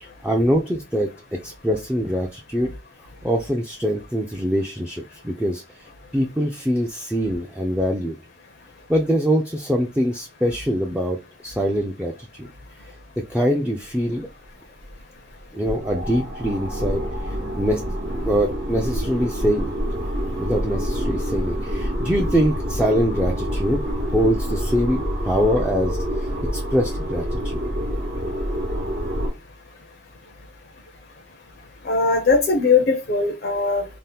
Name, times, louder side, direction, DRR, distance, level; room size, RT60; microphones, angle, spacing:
voice 1, 0.0-2.7 3.2-8.2 8.9-12.5 12.8-14.3 15.5-17.8 18.3-19.7 20.3-23.8 24.1-27.6, equal, 5° right, 0 dB, 0.3 m, -24 dB
sound 1, 14.4-14.5 14.8-15.0 15.4-29.3, equal, 75° right, 0.9 m, -27 dB
voice 2, 31.9-33.8, left 4 dB, 55° left, 2 dB, 0.5 m, -19 dB
2.7 x 2.1 x 3.3 m, 0.27 s
head